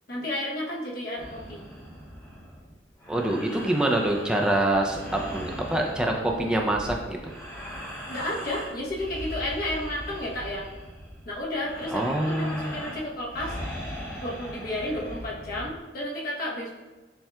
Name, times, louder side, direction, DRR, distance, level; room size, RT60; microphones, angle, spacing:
voice 1, 0.1-1.6 8.1-10.7 11.3-13.5 14.2-16.7, left 1 dB, 55° left, -4 dB, 0.9 m, -32 dB
sound 1, 1.2-15.8, equal, 20° left, 1.2 m, -39 dB
voice 2, 3.1-7.2 11.9-12.7, right 1 dB, 5° right, 0 dB, 0.3 m, -25 dB
6.9 x 2.3 x 2.2 m, 1.2 s
head